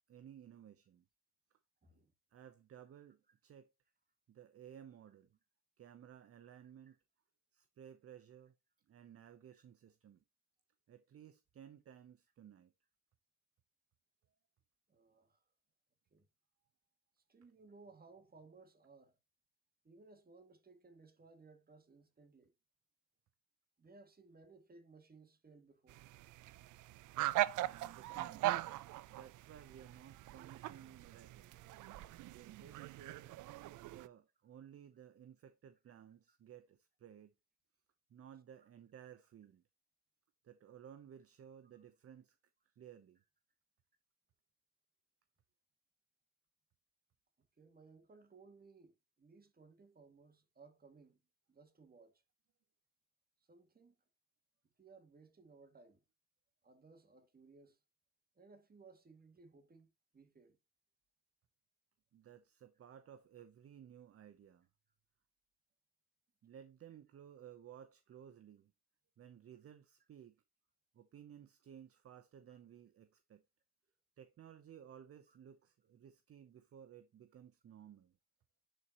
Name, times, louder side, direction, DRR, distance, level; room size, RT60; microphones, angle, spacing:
voice 1, 0.1-1.1 1.9-2.0 2.3-3.7 4.3-5.3 5.8-7.0 7.5-8.5 8.9-10.2 10.9-12.7 27.6-28.6 29.1-31.6 32.0-33.3 33.8-37.3 38.1-39.6 40.4-42.4 42.7-43.2 62.1-64.7 66.4-68.7 69.2-70.4 70.9-73.4 74.2-78.1, right 9 dB, 50° right, 0.8 m, -57 dB
voice 2, 14.9-15.4 16.1-16.3 17.3-19.1 19.8-22.5 23.8-26.0 31.5-31.6 36.3-36.4 41.7-41.8 47.6-51.2 51.5-52.2 53.5-53.9 54.8-56.0 56.6-57.8 58.4-60.6 72.5-72.6 75.3-75.4, right 4 dB, 30° right, 2.1 m, -61 dB
sound 1, 25.9-34.1, right 16 dB, 80° right, 0.5 m, -40 dB
10.5 x 4.4 x 2.9 m
cardioid pair, 90°, 30 cm